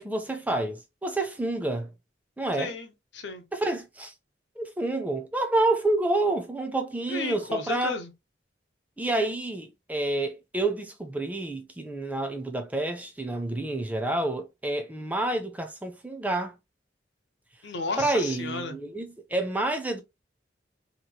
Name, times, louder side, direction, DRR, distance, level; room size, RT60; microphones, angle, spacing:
voice 1, 0.0-1.9 2.4-2.8 3.5-4.1 4.6-8.0 9.0-16.6 18.0-20.0, right 2 dB, 10° right, 0.4 m, -28 dB
voice 2, 2.6-3.4 7.1-8.1 17.6-18.8, left 3 dB, 80° left, 0.8 m, -34 dB
3.0 x 2.8 x 2.2 m
head